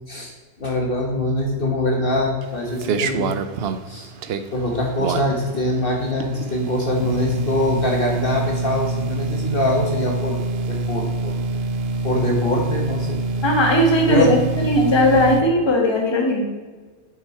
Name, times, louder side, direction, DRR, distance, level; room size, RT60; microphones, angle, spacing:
voice 1, 0.6-3.3 3.9-4.1 4.5-10.4 10.7-11.4 12.0-13.2 14.1-14.3, left 1 dB, 45° left, 0 dB, 1.4 m, -23 dB
sound 1, 2.4-15.4, right 3 dB, 60° right, 0.7 m, -26 dB
voice 2, 13.4-16.4, left 1 dB, 20° left, 1 dB, 1.3 m, -18 dB
8.0 x 6.4 x 4.3 m, 1.4 s
omnidirectional pair, 1.3 m